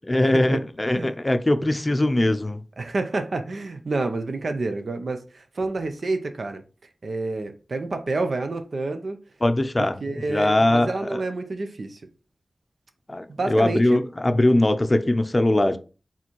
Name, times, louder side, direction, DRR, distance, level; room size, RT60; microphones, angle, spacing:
voice 1, 0.1-2.6 9.4-11.2 13.1-15.8, left 1 dB, 30° left, 0.5 m, -21 dB
voice 2, 2.8-6.6 7.0-9.2 9.8-12.0 13.3-14.0, right 3 dB, 75° right, 0.6 m, -29 dB
4.2 x 3.7 x 3.0 m
cardioid pair, 45°, 0 cm